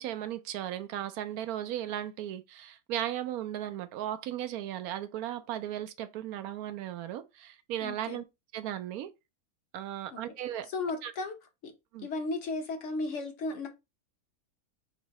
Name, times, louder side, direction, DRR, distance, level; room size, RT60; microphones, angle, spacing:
voice 1, 0.0-8.2 8.5-9.1 9.7-10.7 11.0-11.1 11.9-12.1, right 11 dB, 75° right, 1.0 m, -36 dB
voice 2, 7.8-8.2 10.1-10.2 10.7-11.3 11.6-11.7 12.0-13.7, left 3 dB, 55° left, 1.2 m, -34 dB
3.9 x 2.7 x 4.1 m
omnidirectional pair, 1.6 m